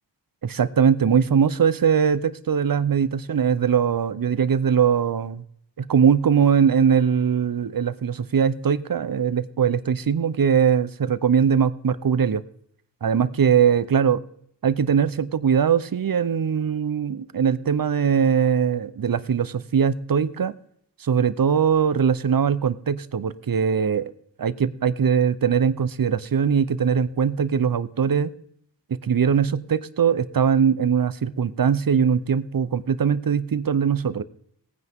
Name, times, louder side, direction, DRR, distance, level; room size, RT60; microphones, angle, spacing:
voice 1, 0.4-5.4 5.8-12.4 13.0-14.2 14.6-20.5 21.0-24.1 24.4-28.3 29.0-34.2, right 7 dB, 50° right, 15 dB, 0.9 m, -21 dB
17.5 x 9.7 x 3.7 m, 0.68 s
cardioid pair, 55°, 44 cm